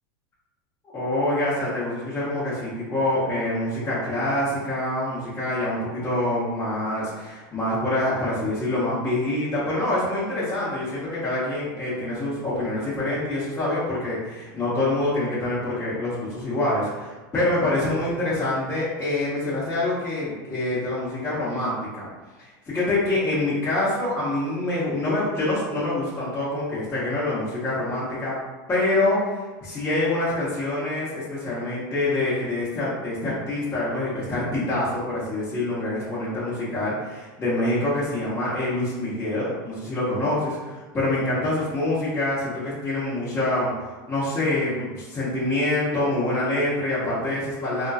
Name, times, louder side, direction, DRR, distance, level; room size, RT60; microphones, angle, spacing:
voice 1, 0.9-22.1 22.4-28.4 28.7-47.9, left 2 dB, 20° left, -11 dB, 1.1 m, -26 dB
3.5 x 2.7 x 2.4 m, 1.2 s
supercardioid pair, 120°, 12 cm